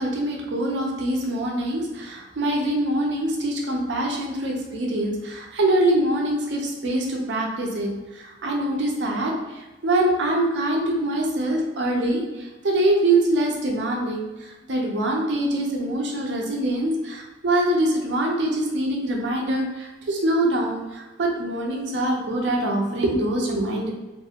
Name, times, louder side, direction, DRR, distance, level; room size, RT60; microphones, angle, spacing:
voice 1, 0.0-23.9, right 1 dB, 65° right, 0 dB, 0.5 m, -24 dB
2.6 x 2.4 x 2.8 m, 1.1 s
head